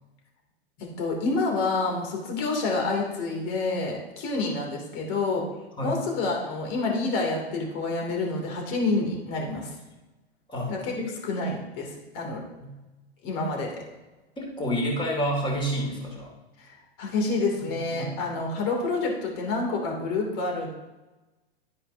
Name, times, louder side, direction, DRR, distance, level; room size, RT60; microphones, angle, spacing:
voice 1, 0.8-5.4 5.8-9.7 10.7-10.9 11.3-12.4 13.2-13.7 16.6-20.7, left 3 dB, 45° left, 0 dB, 3.0 m, -28 dB
voice 2, 10.5-11.1 12.6-12.8 14.4-16.3 17.7-18.1, equal, 15° left, -1 dB, 2.8 m, -29 dB
11.0 x 9.9 x 2.8 m, 1.1 s
hypercardioid pair, 105°, 32 cm